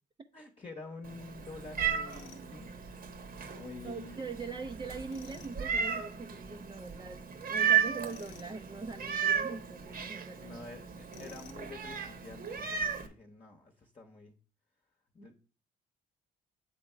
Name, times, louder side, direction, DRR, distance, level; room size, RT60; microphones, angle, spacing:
voice 1, 0.3-2.7 3.5-4.2 10.4-14.3 15.1-15.4, left 3 dB, 30° left, 1.0 m, -48 dB
Meow, 1.0-13.1, right 7 dB, 50° right, 1.1 m, -35 dB
Tools, 2.1-2.5 5.1-5.5 8.0-8.5 11.1-11.7, left 8 dB, 90° left, 0.9 m, -53 dB
voice 2, 3.8-10.7, right 4 dB, 20° right, 0.6 m, -42 dB
8.2 x 3.5 x 4.4 m
supercardioid pair, 75°, 19 cm